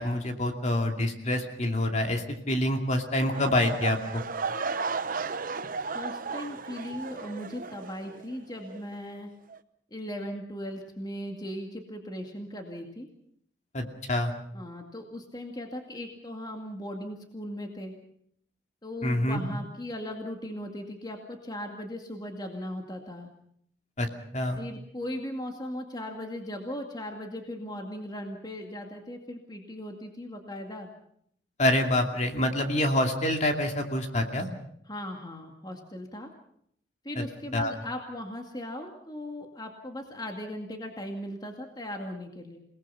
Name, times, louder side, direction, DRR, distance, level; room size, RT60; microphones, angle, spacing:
voice 1, 0.0-4.2 13.7-14.3 19.0-19.4 24.0-24.1 24.3-24.6 31.6-34.5 37.2-37.3 37.5-37.7, left 1 dB, 40° left, 4 dB, 2.6 m, -26 dB
sound 1, 3.3-8.3 8.6-9.0 9.5-9.6, right 4 dB, 50° right, 0.9 m, -34 dB
voice 2, 5.9-9.3 9.9-13.1 14.5-17.9 18.8-23.3 24.6-30.9 34.9-36.3 37.0-42.6, left 1 dB, 25° left, 3 dB, 2.2 m, -38 dB
28.0 x 19.0 x 5.7 m, 0.68 s
head